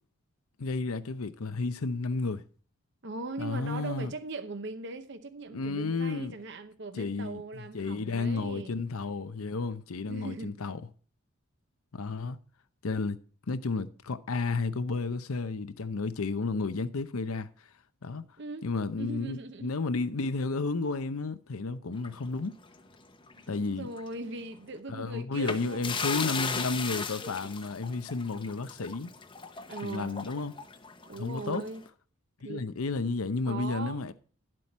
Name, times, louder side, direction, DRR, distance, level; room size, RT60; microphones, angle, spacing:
voice 1, 0.6-2.4 3.4-4.1 5.5-6.3 6.9-10.9 11.9-12.4 12.8-13.2 13.5-17.5 18.0-18.2 18.6-22.6 23.5-23.9 24.9-29.1 29.8-30.5 31.2-31.6 32.4-34.1, left 3 dB, 85° left, 0.7 m, -32 dB
voice 2, 3.0-8.8 10.1-10.6 18.4-18.7 19.0-19.7 23.4-26.3 29.7-30.3 31.1-31.8 32.4-32.7 33.5-34.0, right 3 dB, 55° right, 0.9 m, -40 dB
sound 1, 22.0-23.6 23.9-24.1 25.3-31.8, left 5 dB, 25° left, 0.7 m, -37 dB
11.0 x 7.7 x 4.2 m
head